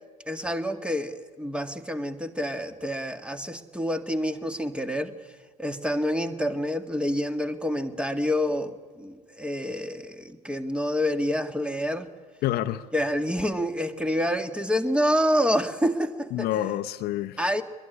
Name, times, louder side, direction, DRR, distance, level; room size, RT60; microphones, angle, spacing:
voice 1, 0.3-5.1 5.6-12.1 12.9-16.5 17.4-17.6, equal, 5° right, 8 dB, 1.9 m, -27 dB
voice 2, 12.4-12.9 16.3-17.6, left 13 dB, 50° left, 10 dB, 0.9 m, -28 dB
22.0 x 22.0 x 9.7 m, 1.5 s
figure-of-eight pair, 65°, 20 cm